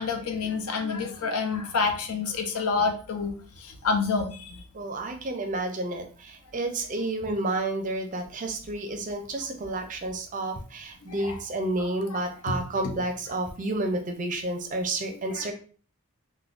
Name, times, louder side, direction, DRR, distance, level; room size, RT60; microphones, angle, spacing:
voice 1, 0.0-3.3 3.6-4.6 11.1-11.4 11.8-12.2 12.5-12.6 12.8-12.9 15.3-15.5, left 4 dB, 85° left, 5 dB, 0.6 m, -28 dB
voice 2, 4.7-15.5, right 2 dB, 35° right, 5 dB, 0.4 m, -30 dB
3.3 x 2.1 x 2.4 m, 0.41 s
head